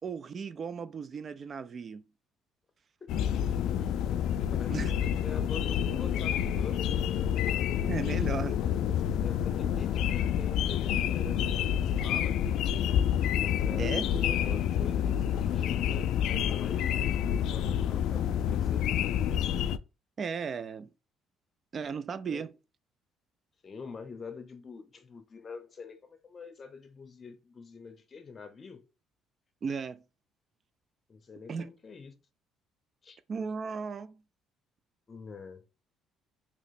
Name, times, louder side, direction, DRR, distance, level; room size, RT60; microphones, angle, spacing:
voice 1, 0.0-2.0 4.7-4.9 7.9-8.6 13.8-14.1 20.2-20.9 21.7-22.5 29.6-30.0 31.5-31.7 33.3-34.2, right 5 dB, 35° right, 0.3 m, -35 dB
voice 2, 3.0-3.4 4.5-6.9 9.2-12.4 13.4-18.9 22.3-22.4 23.6-28.8 31.1-32.1 33.0-33.2 35.1-35.6, left 5 dB, 30° left, 0.7 m, -46 dB
sound 1, 3.1-19.8, left 9 dB, 70° left, 0.3 m, -28 dB
3.0 x 2.8 x 4.1 m
cardioid pair, 125°, 0 cm